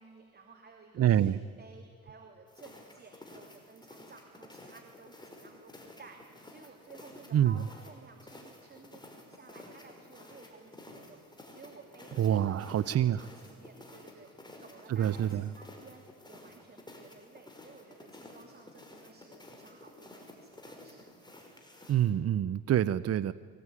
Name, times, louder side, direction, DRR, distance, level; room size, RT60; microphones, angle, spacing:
voice 1, 0.0-21.1, right 4 dB, 30° right, 3 dB, 3.1 m, -55 dB
voice 2, 1.0-1.4 7.3-7.5 12.2-13.2 14.9-15.4 21.9-23.3, right 10 dB, 55° right, 15 dB, 0.7 m, -26 dB
sound 1, 2.5-22.1, left 1 dB, 15° left, 5.4 m, -52 dB
23.5 x 20.5 x 9.8 m, 2.3 s
cardioid pair, 90°, 30 cm